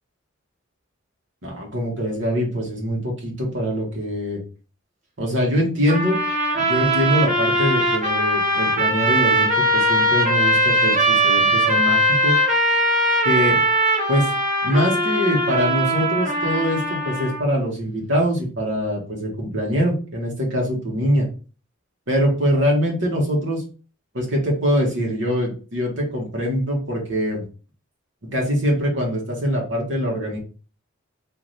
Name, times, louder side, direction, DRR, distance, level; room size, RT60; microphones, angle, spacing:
voice 1, 1.4-4.4 5.2-6.2 6.6-12.3 13.2-13.6 14.1-14.3 14.6-21.3 22.1-23.6 24.1-27.4 28.3-30.4, equal, 65° right, -1 dB, 1.3 m, -23 dB
sound 1, 5.9-17.4, right 1 dB, 35° right, 1.1 m, -20 dB
3.2 x 2.8 x 4.1 m, 0.36 s
head